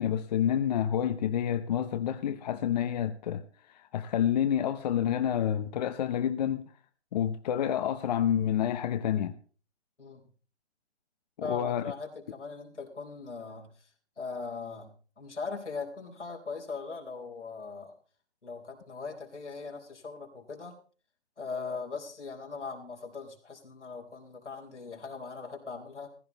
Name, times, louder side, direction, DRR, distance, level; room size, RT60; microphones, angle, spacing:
voice 1, 0.0-3.4 3.7-6.6 7.1-9.4 11.4-11.9, left 10 dB, 40° left, 0.9 m, -28 dB
voice 2, 10.0-10.3 11.4-13.9 14.2-17.9 18.4-20.8 21.4-26.1, left 4 dB, 90° left, 4.2 m, -40 dB
15.5 x 12.5 x 4.0 m
figure-of-eight pair, 140°, 34 cm